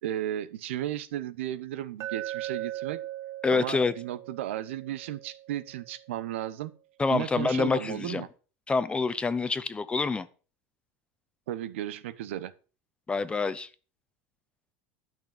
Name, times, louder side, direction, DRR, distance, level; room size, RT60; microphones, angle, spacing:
voice 1, 0.0-3.0 3.5-6.7 7.1-8.3 11.5-12.5, right 12 dB, 85° right, 1.1 m, -34 dB
Glass, 2.0-6.1, right 14 dB, 45° right, 0.6 m, -39 dB
voice 2, 3.4-3.9 7.0-8.2 8.7-10.3 13.1-13.7, left 4 dB, 15° left, 1.0 m, -27 dB
12.0 x 6.2 x 7.3 m
supercardioid pair, 115°, 6 cm